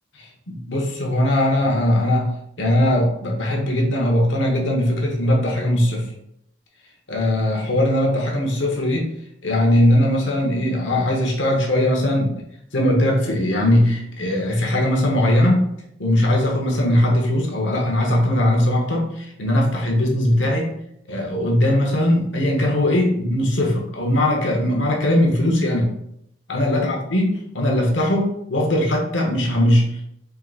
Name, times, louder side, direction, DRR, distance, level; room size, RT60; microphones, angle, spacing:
voice 1, 0.1-2.3 2.6-6.1 7.1-9.1 9.4-12.3 12.7-15.7 16.0-20.8 21.1-25.9 26.5-30.0, left 1 dB, 85° left, 0 dB, 1.1 m, -20 dB
4.5 x 3.8 x 2.5 m, 0.75 s
head